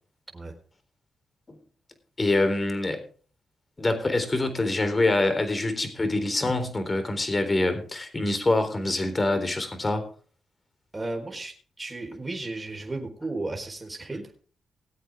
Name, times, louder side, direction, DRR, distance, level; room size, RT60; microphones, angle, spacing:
voice 1, 2.2-3.0 3.8-10.0 14.1-14.2, left 2 dB, 30° left, 8 dB, 3.8 m, -25 dB
voice 2, 10.9-14.2, right 2 dB, 20° right, 1 dB, 4.4 m, -34 dB
19.5 x 8.3 x 3.7 m, 0.42 s
supercardioid pair, 55°, 0 cm